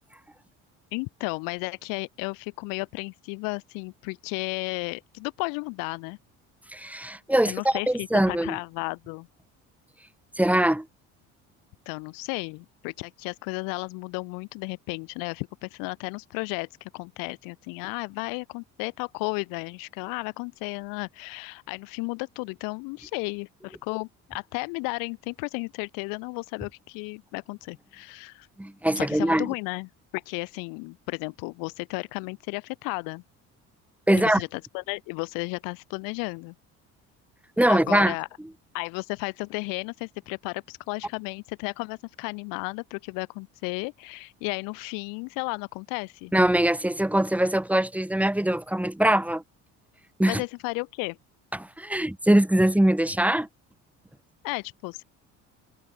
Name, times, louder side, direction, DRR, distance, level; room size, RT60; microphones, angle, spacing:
voice 1, 0.9-6.2 7.4-9.3 11.8-28.5 28.9-33.2 34.1-36.5 37.7-38.3 38.7-46.3 50.2-51.2 54.4-55.0, left 32 dB, 90° left, 5.1 m, -33 dB
voice 2, 6.7-8.6 10.4-10.9 28.6-29.5 34.1-34.4 37.6-38.1 46.3-49.4 50.2-50.4 51.5-53.5, right 1 dB, 5° right, 3.0 m, -22 dB
supercardioid pair, 90°, 33 cm